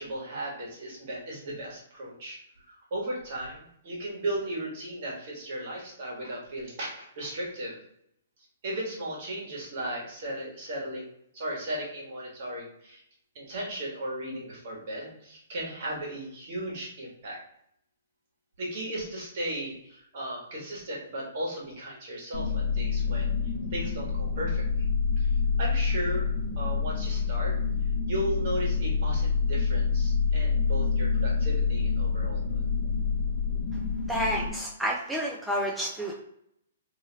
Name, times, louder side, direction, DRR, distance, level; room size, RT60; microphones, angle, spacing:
voice 1, 0.0-7.8 8.6-13.0 13.3-17.4 18.6-23.3 23.7-24.9 25.2-26.3 26.6-27.5 28.1-32.7, right 1 dB, 55° right, -4 dB, 1.4 m, -36 dB
sound 1, 22.3-34.5, left 5 dB, 40° left, 0.8 m, -27 dB
voice 2, 34.1-36.2, equal, 5° right, -3 dB, 0.4 m, -30 dB
2.8 x 2.4 x 3.0 m, 0.73 s
hypercardioid pair, 125°, 0 cm